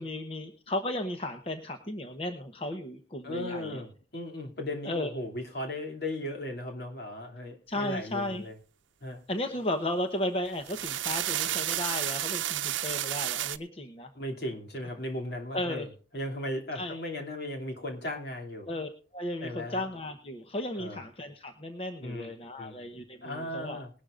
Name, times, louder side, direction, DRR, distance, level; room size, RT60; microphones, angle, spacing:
voice 1, 0.0-3.8 4.8-5.1 7.7-8.4 9.3-14.1 15.5-15.9 16.7-17.0 18.7-23.8, left 1 dB, 30° left, 6 dB, 0.9 m, -34 dB
voice 2, 3.2-8.6 9.0-9.2 14.1-15.9 16.1-18.7 19.4-19.8 20.8-21.0 22.0-22.3 22.6-22.9 23.2-23.9, left 1 dB, 55° left, 3 dB, 2.7 m, -36 dB
sound 1, 10.5-13.6, right 13 dB, 85° right, 0.7 m, -31 dB
20.5 x 11.5 x 2.5 m, 0.38 s
head